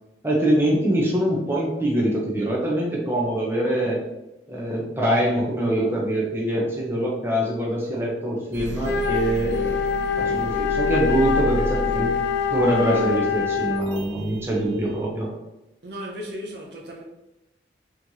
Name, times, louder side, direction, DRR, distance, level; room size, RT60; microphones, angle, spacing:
voice 1, 0.2-4.0 4.5-9.8 10.2-12.1 12.5-15.3, right 1 dB, 15° right, 0.8 m, -24 dB
sound 1, 8.5-15.1, equal, 85° right, 0.5 m, -33 dB
Wind instrument woodwind instrument, 8.8-14.0, left 6 dB, 65° left, 0.4 m, -25 dB
voice 2, 15.8-17.0, equal, 70° right, 0.9 m, -35 dB
4.2 x 3.1 x 2.8 m
head